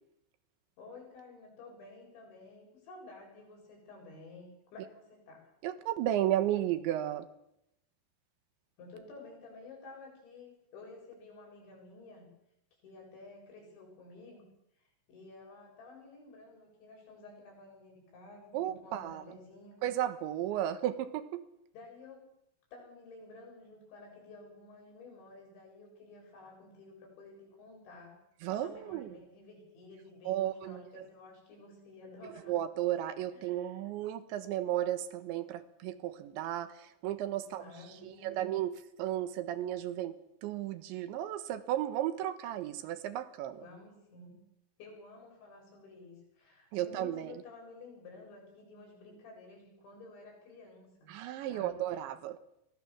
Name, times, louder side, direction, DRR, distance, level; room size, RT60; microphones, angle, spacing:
voice 1, 0.8-5.5 8.8-12.3 12.8-14.4 15.1-19.8 21.7-22.3 22.7-28.2 28.6-32.5 33.3-33.7 37.4-38.5 43.6-44.4 44.8-51.1 51.5-51.8, left 3 dB, 80° left, 0 dB, 10.0 m, -52 dB
voice 2, 5.6-7.3 18.5-19.4 19.8-21.4 28.4-29.2 30.3-31.1 32.3-37.6 38.0-43.7 46.7-47.4 51.1-52.4, right 12 dB, 85° right, 10 dB, 3.6 m, -34 dB
23.5 x 17.5 x 7.4 m, 0.82 s
omnidirectional pair, 5.2 m